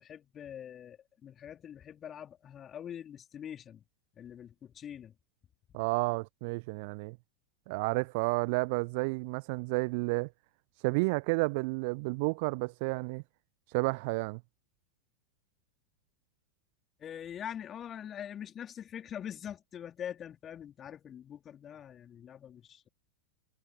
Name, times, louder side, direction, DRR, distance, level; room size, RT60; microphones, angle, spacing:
voice 1, 0.0-3.8 4.1-5.1 5.7-5.8 17.0-22.9, left 9 dB, 25° left, 3.3 m, -44 dB
voice 2, 5.7-7.2 7.7-10.3 10.8-13.2 13.7-14.4, right 29 dB, 45° right, 1.0 m, -31 dB
figure-of-eight pair, 90°, 0 cm